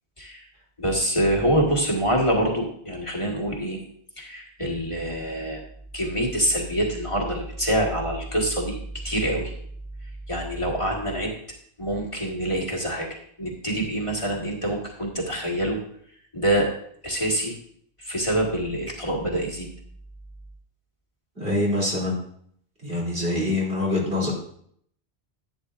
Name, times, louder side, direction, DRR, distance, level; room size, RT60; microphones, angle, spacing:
voice 1, 0.8-3.8 4.2-5.6 5.9-8.8 9.0-9.5 10.3-11.3 11.8-15.8 16.3-16.7 17.0-17.6 18.0-19.7, right 1 dB, 30° left, -1 dB, 1.6 m, -25 dB
voice 2, 21.4-22.2 22.8-24.3, left 2 dB, 65° right, -3 dB, 3.2 m, -25 dB
11.0 x 9.8 x 2.5 m, 0.66 s
omnidirectional pair, 1.0 m